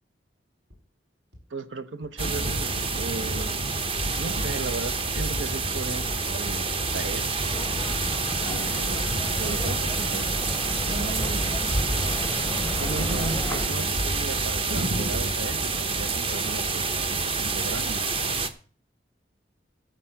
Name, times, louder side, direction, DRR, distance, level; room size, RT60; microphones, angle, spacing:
sound 1, 0.7-0.8 1.3-1.4 2.0-2.1 2.6-2.7 3.1-3.5 4.1-4.2 4.7-4.8 5.4-5.5 5.9-6.0 6.6-6.7 7.3-7.4 7.9-8.0, left 1 dB, 65° right, 5.9 m, -47 dB
voice 1, 1.5-3.5 4.2-7.2 8.4-9.1 9.4-10.4 10.8-11.6 12.8-18.1, right 3 dB, 90° right, 0.9 m, -36 dB
sound 2, 2.2-18.5, right 3 dB, 30° right, 1.0 m, -27 dB
sound 3, 7.5-13.7, left 1 dB, 15° left, 0.6 m, -34 dB
13.5 x 5.0 x 7.7 m
head